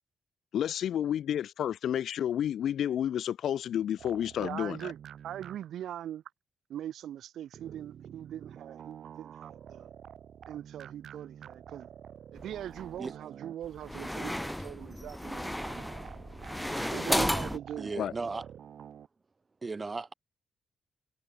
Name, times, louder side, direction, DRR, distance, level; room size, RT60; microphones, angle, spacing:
voice 1, 0.5-4.8 18.0-18.1, left 10 dB, 70° left, 0.6 m, -30 dB
sound 1, 4.0-5.9 7.5-13.9 15.6-19.1, right 9 dB, 60° right, 1.9 m, -48 dB
voice 2, 4.4-5.0 5.2-6.2 6.7-9.9 10.5-11.9 12.3-15.9 16.9-17.9, right 11 dB, 80° right, 1.5 m, -41 dB
sound 2, 12.4-13.0 13.6-17.6, equal, 5° left, 1.0 m, -33 dB
voice 3, 17.8-18.5 19.6-20.1, right 3 dB, 20° right, 3.8 m, -36 dB
wide cardioid pair, 165°, 0 cm